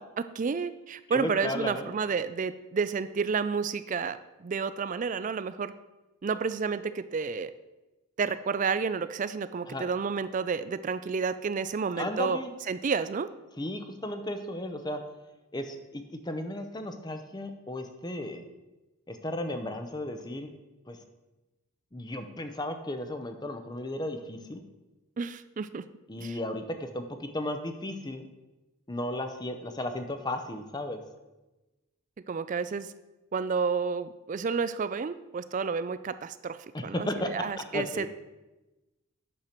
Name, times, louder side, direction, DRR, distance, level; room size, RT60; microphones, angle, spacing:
voice 1, 0.4-5.7 6.2-7.5 8.2-12.4 12.7-13.3 25.2-25.8 26.2-26.4 32.3-32.9 33.3-36.6 36.8-38.1, right 5 dB, 35° right, 13 dB, 0.3 m, -30 dB
voice 2, 1.1-1.9 9.7-9.9 12.0-12.5 13.6-15.0 15.5-18.4 19.1-20.5 20.9-21.0 21.9-24.6 26.1-28.2 28.9-31.0 36.7-38.1, left 1 dB, 20° left, 7 dB, 0.6 m, -35 dB
8.6 x 6.6 x 4.4 m, 1.1 s
head